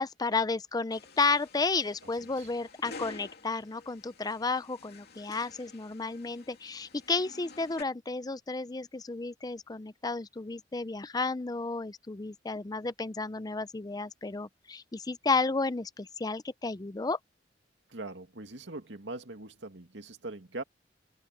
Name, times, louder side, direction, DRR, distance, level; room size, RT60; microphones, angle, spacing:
voice 1, 0.0-17.2, left 3 dB, 20° left, 0.5 m, -32 dB
sound 1, 0.9-7.8, left 3 dB, 60° left, 3.0 m, -50 dB
voice 2, 17.9-20.6, right 2 dB, 80° right, 2.2 m, -42 dB
open air
head